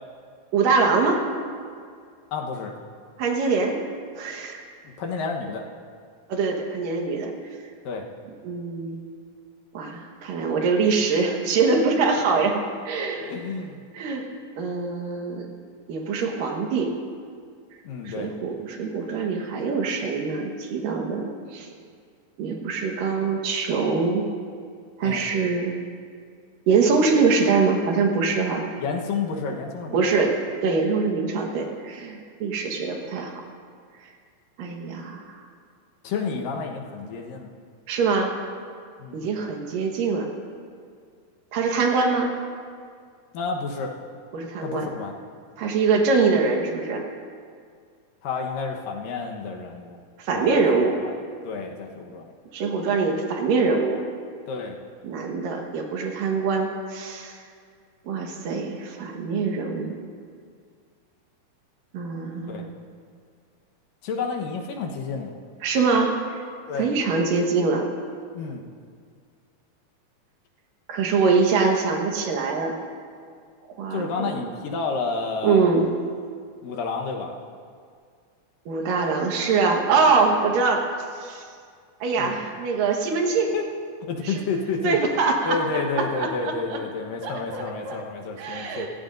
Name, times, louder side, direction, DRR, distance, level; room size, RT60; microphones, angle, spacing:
voice 1, 0.5-1.2 3.2-3.8 4.1-4.6 6.3-7.3 8.4-9.0 9.7-13.3 13.9-14.2 14.6-15.5 15.9-16.9 18.0-21.7 22.4-24.3 25.0-25.7 26.7-28.6 29.9-30.4 30.6-33.4 34.6-35.5 37.9-38.3 39.1-40.3 41.5-42.3 44.3-44.9 45.6-47.0 50.2-51.0 52.5-54.0 55.0-57.4 58.1-59.9 61.9-62.7 65.6-66.4 66.8-67.9 70.9-72.7 73.8-74.5 75.4-75.9 78.7-80.8 81.1-81.4 82.0-83.5 84.2-84.4 84.8-85.6 86.0-86.8 87.2-88.0 88.4-88.9, right 4 dB, 75° right, 2 dB, 3.0 m, -23 dB
voice 2, 2.3-2.7 5.0-5.7 7.8-8.1 13.2-13.8 17.8-18.3 25.0-25.3 28.8-30.0 36.0-37.5 39.0-39.2 43.3-43.9 44.6-45.1 48.2-50.0 50.3-51.1 51.4-52.3 54.5-54.8 62.5-62.6 64.0-65.3 66.7-66.9 68.3-68.6 73.9-75.6 76.6-77.3 82.2-82.4 83.5-83.6 84.0-85.0 85.5-88.9, left 4 dB, 75° left, 1 dB, 2.8 m, -30 dB
27.5 x 15.5 x 2.6 m, 2.1 s
omnidirectional pair, 4.1 m